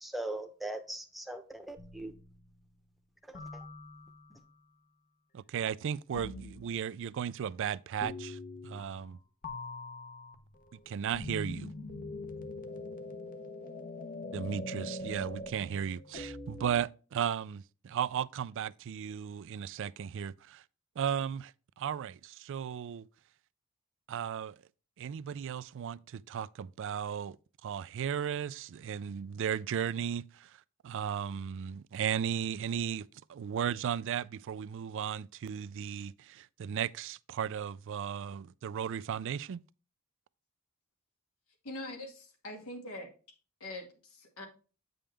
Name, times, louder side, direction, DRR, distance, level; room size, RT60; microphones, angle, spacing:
voice 1, 0.0-2.1 3.2-3.7, right 1 dB, ahead, 0.9 m, -40 dB
sound 1, 1.8-2.6 3.3-4.4 6.1-6.7 8.0-9.2 9.4-16.8, left 2 dB, 40° left, 0.8 m, -43 dB
voice 2, 5.3-9.2 10.9-11.7 14.3-20.6 21.0-21.5 21.8-23.1 24.1-24.6 25.0-27.4 27.6-30.6 30.8-39.6, right 8 dB, 60° right, 0.3 m, -35 dB
voice 3, 41.6-42.1 42.4-43.1 43.6-44.5, left 1 dB, 85° left, 2.3 m, -42 dB
8.7 x 5.3 x 3.3 m
head